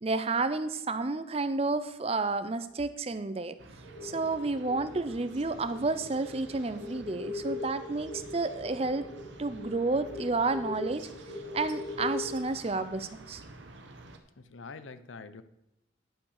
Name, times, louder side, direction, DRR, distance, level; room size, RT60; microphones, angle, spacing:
voice 1, 0.0-3.6 4.0-9.1 9.4-11.1 11.5-13.4, right 3 dB, 30° right, 12 dB, 0.6 m, -31 dB
sound 1, 3.6-14.2, right 2 dB, 70° right, 1.2 m, -50 dB
sound 2, 3.8-12.4, left 3 dB, 50° left, 3.5 m, -41 dB
voice 2, 14.4-15.4, left 4 dB, 90° left, 13 dB, 0.7 m, -45 dB
10.5 x 5.8 x 6.5 m, 0.87 s
head